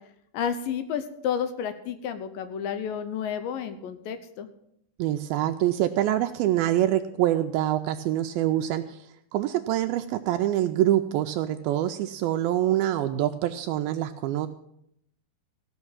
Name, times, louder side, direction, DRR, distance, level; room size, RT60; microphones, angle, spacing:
voice 1, 0.3-4.5, left 8 dB, 75° left, 10 dB, 2.3 m, -31 dB
voice 2, 5.0-14.5, right 13 dB, 80° right, 7 dB, 2.3 m, -25 dB
16.0 x 6.2 x 7.3 m, 0.75 s
omnidirectional pair, 4.4 m